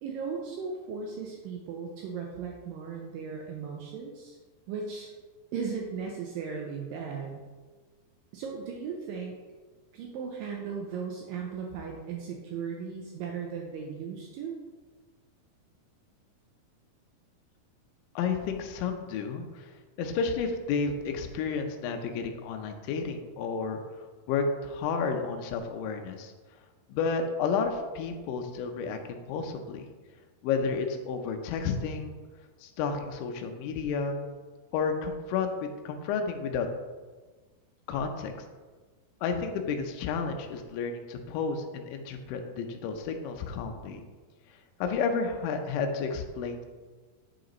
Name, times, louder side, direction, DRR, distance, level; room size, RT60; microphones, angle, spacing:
voice 1, 0.0-4.4 4.7-5.1 5.5-7.4 8.3-9.4 9.9-14.6, right 6 dB, 90° right, 0 dB, 2.0 m, -37 dB
voice 2, 18.2-19.7 20.0-23.8 24.3-26.3 26.9-29.9 30.4-32.2 32.6-34.2 34.7-36.7 37.9-38.3 39.2-44.0 44.8-46.6, left 5 dB, 90° left, 5 dB, 1.9 m, -31 dB
8.7 x 5.0 x 3.0 m, 1.4 s
omnidirectional pair, 4.7 m